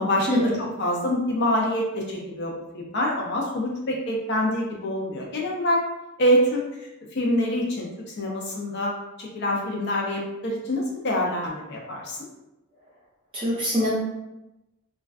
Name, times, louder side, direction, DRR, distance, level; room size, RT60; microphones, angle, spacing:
voice 1, 0.0-5.8 6.2-6.6 7.1-8.9 9.2-12.2, equal, 50° left, -1 dB, 0.4 m, -25 dB
voice 2, 13.3-13.9, equal, 25° right, -7 dB, 0.6 m, -23 dB
2.4 x 2.2 x 2.3 m, 0.95 s
head